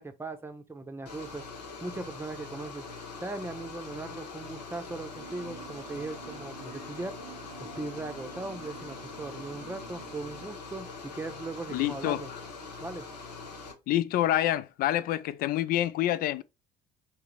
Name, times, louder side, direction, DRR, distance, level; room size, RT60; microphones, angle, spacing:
voice 1, 0.0-1.5 1.8-2.9 3.2-7.2 7.6-12.3 12.8-13.1, right 2 dB, 10° right, 0.8 m, -39 dB
sound 1, 1.1-13.7, left 4 dB, 85° left, 0.9 m, -43 dB
Harp, 1.6-14.4, left 7 dB, 70° left, 1.2 m, -57 dB
sound 2, 5.2-10.5, right 12 dB, 75° right, 0.4 m, -50 dB
voice 2, 11.7-12.4 13.9-16.4, left 13 dB, 45° left, 0.4 m, -27 dB
3.8 x 2.9 x 3.0 m
hypercardioid pair, 60°, 20 cm